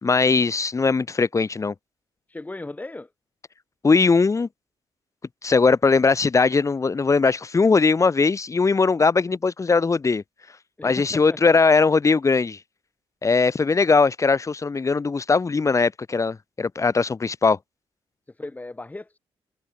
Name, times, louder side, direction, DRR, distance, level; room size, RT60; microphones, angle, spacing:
voice 1, 0.0-1.7 3.8-4.5 5.4-10.2 10.8-12.6 13.2-17.6, left 4 dB, 30° left, 4.3 m, -20 dB
voice 2, 2.3-3.1 10.8-11.6 18.3-19.2, left 2 dB, 15° left, 4.7 m, -37 dB
cardioid pair, 105°, 10 cm